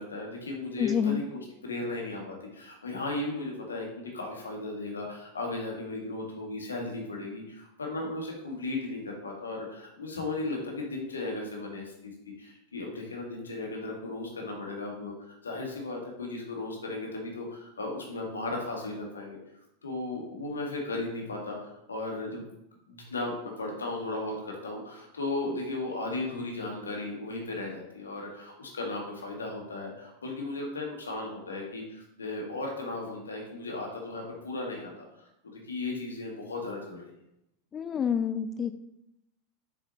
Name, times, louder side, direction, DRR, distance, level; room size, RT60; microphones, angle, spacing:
voice 1, 0.0-19.4 19.8-22.4 22.9-37.1, left 2 dB, 80° left, 0 dB, 1.8 m, -36 dB
voice 2, 0.8-1.2 37.7-38.7, left 8 dB, 25° left, 9 dB, 0.3 m, -28 dB
7.0 x 6.5 x 3.0 m, 0.83 s
figure-of-eight pair, 90°, 0 cm